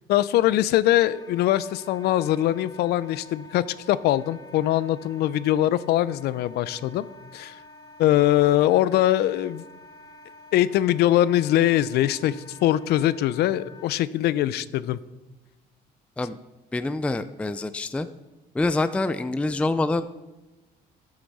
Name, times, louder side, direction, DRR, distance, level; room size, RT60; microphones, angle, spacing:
voice 1, 0.1-7.1 7.3-7.6 8.0-9.7 10.5-12.4 12.6-15.0, left 13 dB, 75° left, 17 dB, 0.5 m, -22 dB
Wind instrument woodwind instrument, 0.9-13.9, left 2 dB, 25° left, 0.8 m, -48 dB
voice 2, 16.7-18.1 18.5-20.2, left 2 dB, 5° left, 12 dB, 0.4 m, -26 dB
11.5 x 7.9 x 4.1 m, 1.1 s
cardioid pair, 110°, 17 cm